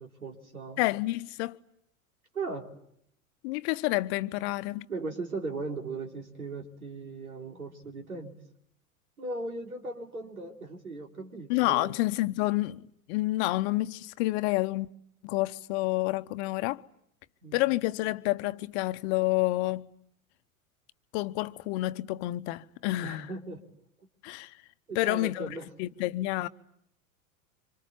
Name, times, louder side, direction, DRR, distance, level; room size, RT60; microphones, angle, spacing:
voice 1, 0.0-0.8 2.3-2.7 4.9-8.3 9.2-11.9 17.4-17.6 23.0-23.6 24.9-25.7, right 3 dB, 90° right, 3.5 m, -38 dB
voice 2, 0.8-1.6 3.4-4.9 11.5-12.8 13.1-14.9 15.2-16.8 17.5-19.9 21.1-23.3 24.2-24.6 24.9-26.5, left 19 dB, 50° left, 1.0 m, -29 dB
26.0 x 25.5 x 8.4 m
hypercardioid pair, 95°, 42 cm